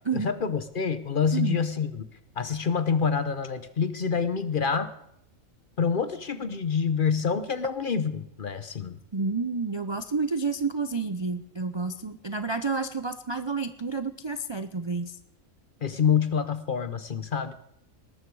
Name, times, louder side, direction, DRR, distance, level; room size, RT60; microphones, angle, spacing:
voice 1, 0.1-2.0 2.4-4.9 5.8-9.0 15.8-17.5, left 6 dB, 45° left, 13 dB, 0.8 m, -27 dB
voice 2, 9.1-15.2, right 4 dB, 35° right, 10 dB, 0.4 m, -30 dB
19.5 x 13.0 x 4.7 m, 0.77 s
omnidirectional pair, 1.4 m